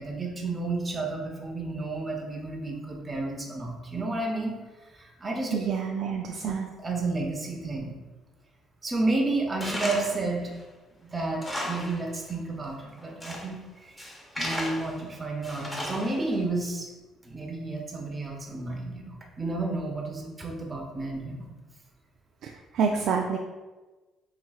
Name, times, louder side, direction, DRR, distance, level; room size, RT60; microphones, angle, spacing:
voice 1, 0.0-4.6 4.9-5.6 6.4-6.5 6.8-7.9 8.8-10.5 11.0-13.6 13.8-14.0 14.4-16.9 17.2-21.5, right 2 dB, 25° right, 1 dB, 0.9 m, -31 dB
voice 2, 5.5-6.7 22.4-23.4, right 6 dB, 70° right, 2 dB, 0.3 m, -28 dB
Tools, 9.6-10.2 10.6-10.7 11.2-12.0 12.3-12.4 13.0-13.5 14.0-15.0 15.4-16.3, left 1 dB, 15° left, 0.9 m, -34 dB
4.8 x 2.9 x 2.3 m, 1.2 s
supercardioid pair, 75°, 0 cm